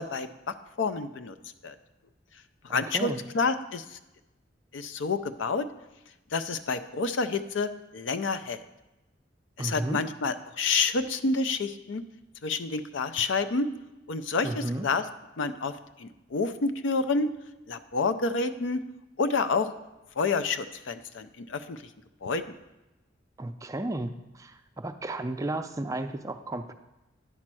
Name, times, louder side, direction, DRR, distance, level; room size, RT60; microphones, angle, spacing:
voice 1, 0.0-1.3 1.6-1.8 2.6-4.0 4.7-5.7 6.3-8.6 9.6-12.0 12.4-13.7 14.1-15.0 15.4-17.3 17.7-18.8 19.2-19.7 20.2-21.8 22.2-22.6, left 4 dB, 85° left, 11 dB, 0.5 m, -29 dB
voice 2, 2.7-3.2 9.6-10.0 14.4-14.9 23.4-26.7, right 1 dB, 15° right, 8 dB, 0.4 m, -33 dB
10.0 x 4.3 x 6.1 m, 0.99 s
head